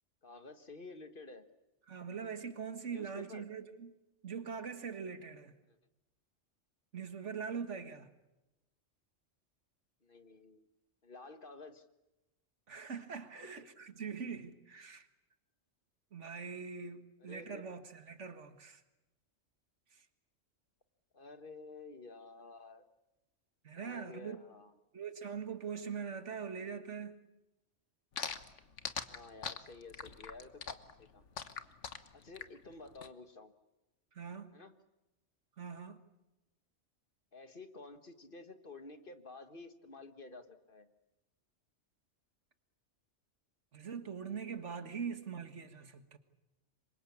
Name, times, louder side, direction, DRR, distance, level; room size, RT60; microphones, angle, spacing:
voice 1, 0.2-1.4 2.8-3.5 5.7-5.8 10.0-10.7 11.0-11.8 13.3-13.5 17.2-17.6 21.1-22.8 23.8-24.7 29.1-31.2 32.1-33.5 34.5-34.7 37.3-40.9, left 3 dB, 45° left, 1.7 m, -51 dB
voice 2, 1.9-3.9 4.2-5.5 6.9-8.1 12.7-15.1 16.1-18.8 19.9-20.1 23.6-24.4 24.9-27.2 34.1-34.5 35.6-36.0 43.7-46.2, right 6 dB, 75° right, 2.0 m, -42 dB
sound 1, 28.2-33.1, left 6 dB, 75° left, 1.6 m, -41 dB
26.5 x 24.0 x 8.6 m
omnidirectional pair, 1.2 m